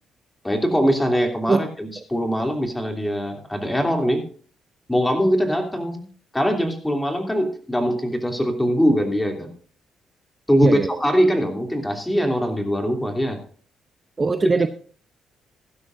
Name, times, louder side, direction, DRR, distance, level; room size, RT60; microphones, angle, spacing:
voice 1, 0.4-4.2 4.9-6.0 6.3-9.5 10.5-13.4, equal, 10° left, 3 dB, 3.0 m, -22 dB
voice 2, 14.2-14.7, right 4 dB, 30° right, 9 dB, 0.7 m, -19 dB
16.0 x 12.0 x 2.6 m, 0.43 s
cardioid pair, 90°, 0 cm